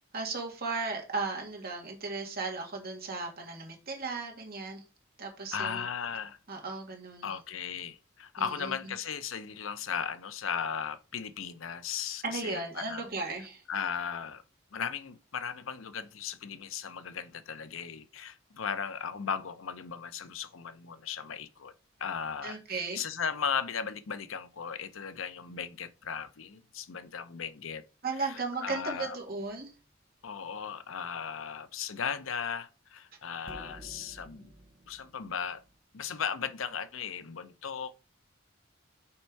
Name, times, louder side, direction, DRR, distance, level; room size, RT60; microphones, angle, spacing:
voice 1, 0.1-4.8 5.2-5.8 6.5-7.3 8.4-8.7 12.2-13.6 22.4-23.0 28.0-29.7, right 4 dB, 50° right, 1.9 m, -36 dB
voice 2, 5.5-6.4 7.2-13.0 13.7-14.4 14.7-21.7 22.0-27.8 28.2-29.2 30.2-34.5 34.9-35.6 35.9-37.9, left 7 dB, 85° left, 0.6 m, -36 dB
sound 1, 29.4-29.8 33.5-35.8, right 1 dB, 25° right, 0.9 m, -52 dB
5.7 x 4.4 x 4.6 m
head